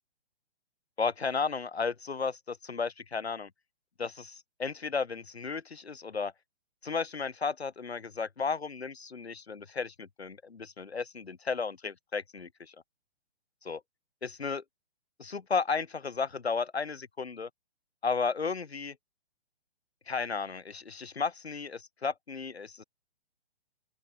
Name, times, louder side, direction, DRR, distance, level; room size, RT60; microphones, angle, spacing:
voice 1, 1.0-3.5 4.0-6.3 6.8-12.7 13.6-13.8 14.2-14.6 15.2-17.5 18.0-18.9 20.1-22.8, left 5 dB, 75° left, 1.8 m, -34 dB
open air
figure-of-eight pair, 125°, 32 cm